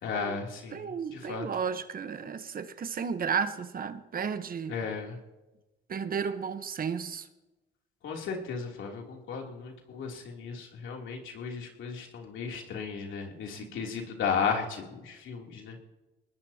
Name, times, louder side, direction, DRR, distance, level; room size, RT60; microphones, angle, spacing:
voice 1, 0.0-1.5 4.7-5.2 8.0-15.8, left 6 dB, 80° left, 0 dB, 3.1 m, -35 dB
voice 2, 0.7-4.7 5.9-7.3 13.6-13.7, right 6 dB, 45° right, 10 dB, 1.0 m, -33 dB
23.0 x 19.5 x 2.9 m, 1.1 s
cardioid pair, 90°, 20 cm